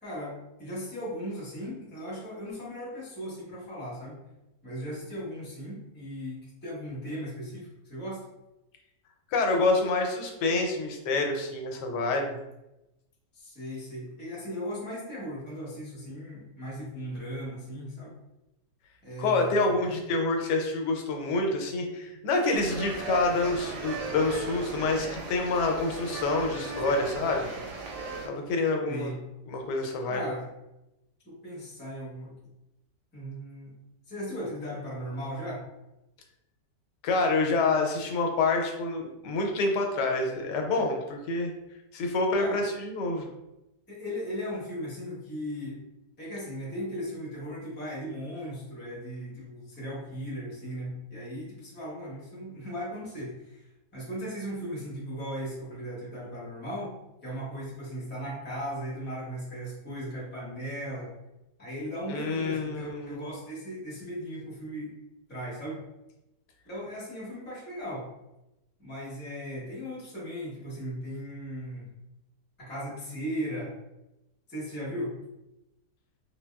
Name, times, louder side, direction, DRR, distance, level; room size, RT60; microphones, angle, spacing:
voice 1, 0.0-4.2 4.6-8.2 13.3-18.1 19.0-20.0 28.9-29.2 30.1-30.5 31.2-32.5 33.1-33.7 34.1-35.6 42.4-42.6 43.9-45.8 46.2-53.7 53.9-56.9 57.2-61.1 61.6-64.9 65.3-65.8 66.7-68.1 68.8-71.9 72.6-73.7 74.5-75.1, equal, 10° left, -7 dB, 0.6 m, -37 dB
voice 2, 9.3-12.4 19.2-27.5 28.2-29.1 29.5-30.2 37.0-41.5 41.9-43.3 62.1-63.2, left 3 dB, 85° left, 2 dB, 1.2 m, -27 dB
sound 1, 22.5-28.3, right 3 dB, 90° right, 1.2 m, -37 dB
3.3 x 2.2 x 2.2 m, 0.93 s
omnidirectional pair, 1.8 m